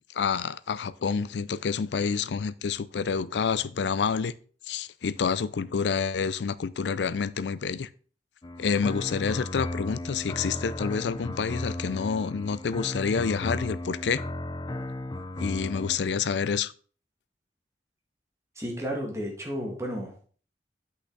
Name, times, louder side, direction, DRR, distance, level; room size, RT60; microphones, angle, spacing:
voice 1, 0.1-4.3 4.7-7.9 8.6-14.2 15.4-16.7, left 6 dB, 75° left, 0.4 m, -28 dB
sound 1, 8.4-16.0, left 1 dB, 25° left, 0.5 m, -35 dB
voice 2, 18.6-20.1, equal, 15° right, 2.0 m, -32 dB
8.2 x 5.9 x 4.0 m
head